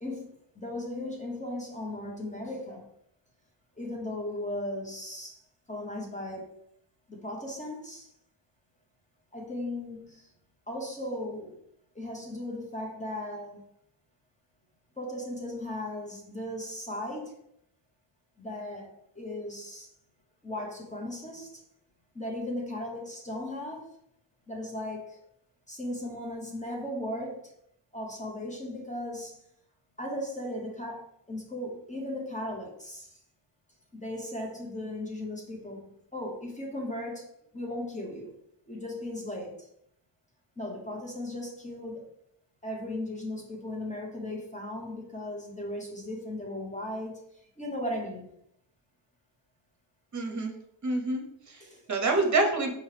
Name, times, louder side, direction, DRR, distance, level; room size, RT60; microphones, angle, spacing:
voice 1, 0.0-2.9 3.8-5.4 5.7-6.5 7.1-8.1 9.3-10.3 10.7-11.6 11.9-13.6 15.0-17.4 18.4-19.9 20.4-21.6 22.1-23.9 24.5-25.2 25.7-27.5 27.9-29.4 30.0-33.1 33.9-37.3 37.5-38.3 38.7-39.7 40.6-42.0 42.6-47.2 47.6-48.3 51.6-51.8 52.1-52.2, left 1 dB, 15° left, -1 dB, 0.9 m, -37 dB
voice 2, 50.1-50.5 50.8-51.6 51.9-52.7, right 2 dB, 40° right, 2 dB, 0.8 m, -27 dB
4.8 x 3.0 x 3.3 m, 0.73 s
wide cardioid pair, 150°, 46 cm